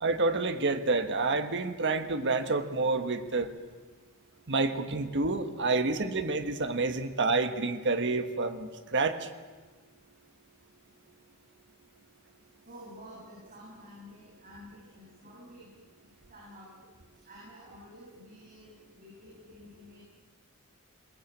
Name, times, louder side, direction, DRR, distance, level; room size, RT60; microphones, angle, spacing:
voice 1, 0.0-3.5 4.5-9.2, right 3 dB, 55° right, 8 dB, 1.5 m, -28 dB
voice 2, 12.6-15.7 16.3-16.7 17.2-20.1, equal, 40° right, -6 dB, 7.8 m, -50 dB
21.5 x 19.5 x 8.7 m, 1.3 s
head